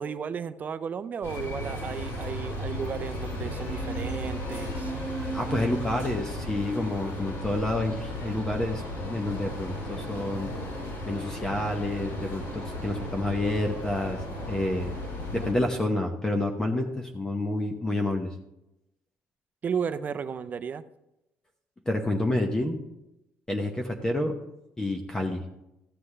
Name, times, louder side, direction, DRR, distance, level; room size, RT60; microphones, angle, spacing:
voice 1, 0.0-4.9 19.6-20.8, right 6 dB, 35° right, 11 dB, 0.5 m, -34 dB
sound 1, 1.2-15.5, left 1 dB, 70° left, 3.9 m, -35 dB
sound 2, 3.6-8.6, right 4 dB, 15° right, 1.3 m, -39 dB
voice 2, 5.3-10.5 11.1-15.0 15.3-18.3 21.9-22.8 23.5-24.3 24.8-25.4, left 1 dB, 15° left, 3 dB, 0.9 m, -29 dB
sound 3, 9.2-14.6, equal, 30° left, 1.8 m, -50 dB
13.5 x 7.7 x 3.3 m, 0.90 s
cardioid pair, 115°, 5 cm